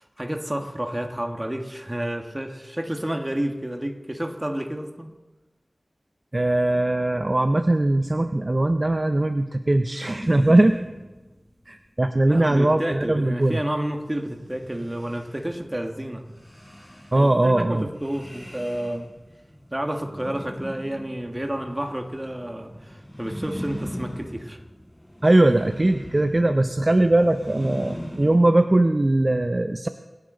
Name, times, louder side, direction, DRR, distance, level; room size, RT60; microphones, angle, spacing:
voice 1, 0.0-5.2 12.3-16.3 17.1-19.1 19.7-24.6, right 1 dB, 20° right, 4 dB, 1.7 m, -30 dB
voice 2, 6.3-10.8 11.7-13.6 17.1-17.9 25.2-29.9, right 1 dB, 40° right, 8 dB, 0.6 m, -20 dB
sound 1, 10.2-11.5 14.1-28.5, equal, 10° left, 3.9 m, -39 dB
27.0 x 10.5 x 3.9 m, 1.1 s
wide cardioid pair, 60°, 0 cm